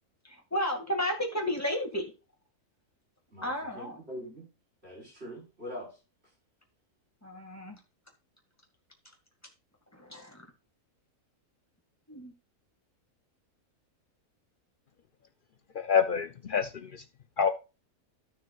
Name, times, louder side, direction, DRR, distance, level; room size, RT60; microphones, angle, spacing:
voice 1, 0.2-2.1 3.4-4.0 7.2-7.8 9.9-10.5 12.1-12.3, equal, 10° left, 2 dB, 1.9 m, -33 dB
voice 2, 3.3-4.4 4.8-5.9, equal, 40° right, -3 dB, 5.1 m, -43 dB
voice 3, 15.7-17.0 17.4-17.5, left 7 dB, 70° left, 8 dB, 0.5 m, -27 dB
14.0 x 6.1 x 2.4 m, 0.29 s
omnidirectional pair, 1.6 m